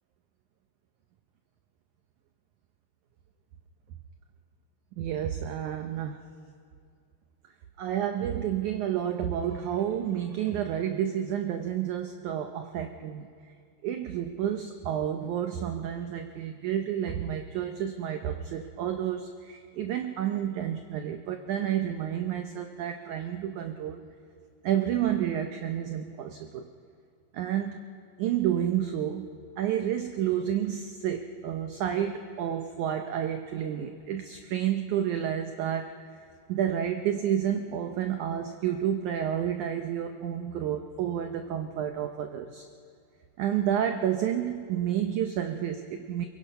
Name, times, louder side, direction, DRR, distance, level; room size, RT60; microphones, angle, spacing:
voice 1, 5.0-6.2 7.8-13.3 13.8-24.0 24.6-26.7 27.3-27.8 28.2-29.3 29.6-36.0 36.5-42.6 43.4-46.3, right 10 dB, 90° right, 6 dB, 1.7 m, -30 dB
23.0 x 22.5 x 5.6 m, 2.2 s
omnidirectional pair, 4.5 m